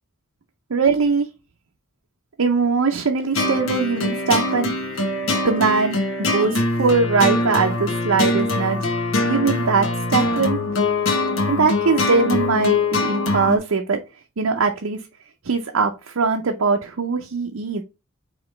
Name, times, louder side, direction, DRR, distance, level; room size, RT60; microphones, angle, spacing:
voice 1, 0.7-1.3 2.4-4.7 5.4-6.0 6.3-8.9 9.2-10.6 11.5-14.0 14.4-15.0 15.4-17.8, right 4 dB, 90° right, 3 dB, 0.6 m, -21 dB
sound 1, 3.3-13.6, left 2 dB, 70° left, 1.1 m, -23 dB
5.0 x 3.2 x 3.1 m, 0.27 s
head